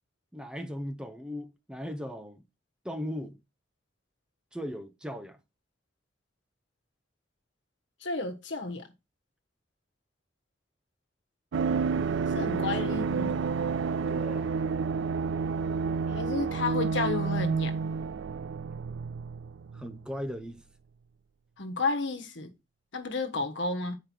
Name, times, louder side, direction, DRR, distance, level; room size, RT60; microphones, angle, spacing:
voice 1, 0.3-2.4 2.8-3.4 4.5-5.4 12.4-12.6 14.1-14.5 19.7-20.6, equal, 5° right, 0.7 m, -38 dB
voice 2, 8.0-8.8 12.3-13.4 16.1-17.7 21.6-22.5 22.9-24.0, left 3 dB, 70° left, 1.3 m, -31 dB
sound 1, 11.5-20.0 20.3-20.4, right 5 dB, 80° right, 0.4 m, -30 dB
8.8 x 4.9 x 4.4 m
head